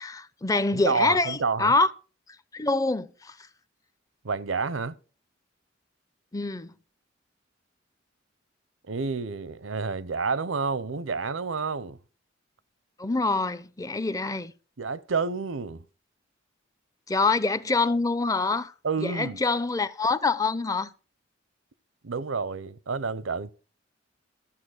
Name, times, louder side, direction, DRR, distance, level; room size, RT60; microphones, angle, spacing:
voice 1, 0.0-1.9 2.5-3.4 6.3-6.7 13.0-14.5 17.1-18.7 19.0-20.9, left 3 dB, 20° left, 0.5 m, -25 dB
voice 2, 0.7-1.7 4.2-4.9 8.9-12.0 14.8-15.8 18.8-19.4 22.0-23.5, right 4 dB, 85° right, 0.8 m, -29 dB
13.5 x 7.1 x 6.4 m
head